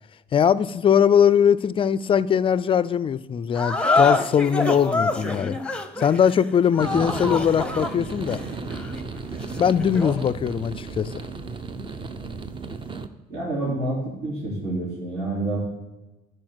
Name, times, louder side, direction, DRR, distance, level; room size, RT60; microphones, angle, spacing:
voice 1, 0.3-5.6 6.0-8.4 9.6-11.2, left 8 dB, 30° left, 0.4 m, -21 dB
sound 1, 3.5-10.3, left 3 dB, 5° left, 0.8 m, -26 dB
sound 2, 6.8-13.1, right 4 dB, 30° right, 0.7 m, -34 dB
voice 2, 13.3-15.6, right 2 dB, 65° right, 3.4 m, -28 dB
10.5 x 4.5 x 6.2 m
cardioid pair, 110°, 17 cm